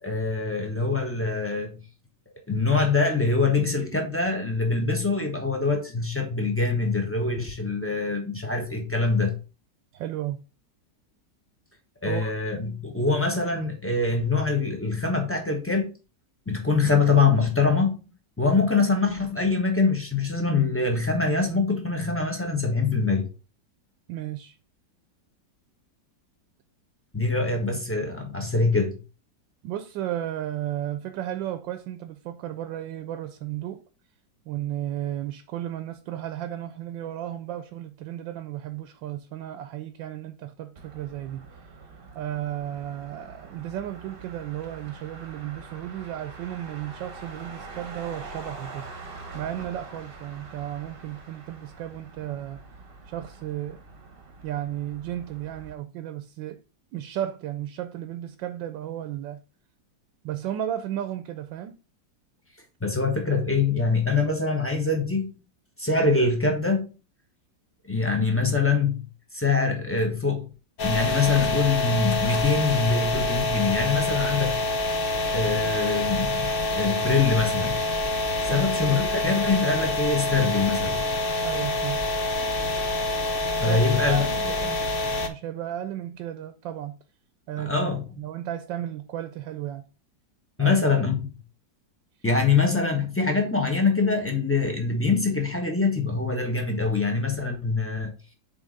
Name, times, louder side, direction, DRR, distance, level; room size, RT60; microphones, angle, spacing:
voice 1, 0.0-1.8 2.5-9.4 12.0-15.9 16.5-18.1 18.4-23.3 27.1-29.0 62.8-65.4 65.8-66.9 67.8-69.0 69.3-70.5 70.8-74.6 75.3-77.9 78.4-81.1 83.6-84.2 87.6-88.0 90.6-91.2 92.2-98.1, left 4 dB, 15° left, 0.5 m, -24 dB
voice 2, 9.9-10.4 12.0-12.3 24.1-24.6 29.6-33.8 34.5-41.4 42.1-48.9 49.3-52.6 53.1-53.8 54.4-56.6 56.9-59.4 60.2-61.8 78.5-78.7 81.4-82.0 83.7-84.8 85.3-87.0 87.5-87.9 88.2-89.8 90.6-90.8, right 12 dB, 85° right, 1.3 m, -34 dB
Motor vehicle (road), 40.8-55.7, right 3 dB, 40° right, 0.9 m, -44 dB
sound 1, 70.8-85.3, left 2 dB, 70° left, 0.5 m, -26 dB
8.0 x 3.4 x 3.7 m
omnidirectional pair, 2.0 m